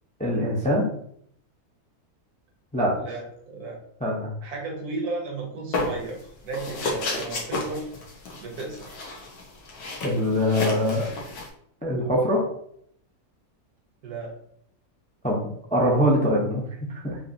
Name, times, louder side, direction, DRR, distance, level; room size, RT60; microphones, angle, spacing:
voice 1, 0.2-0.9 2.7-3.1 4.0-4.3 10.0-11.1 11.8-12.4 15.2-17.2, equal, 10° left, -3 dB, 0.5 m, -23 dB
voice 2, 3.0-3.7 4.4-6.2 6.4-7.9 8.4-9.0 14.0-14.3, right 3 dB, 75° right, 0 dB, 1.5 m, -34 dB
sound 1, 5.7-6.2 6.5-11.5, left 2 dB, 80° left, 1.5 m, -32 dB
5.6 x 2.7 x 2.8 m, 0.68 s
omnidirectional pair, 1.6 m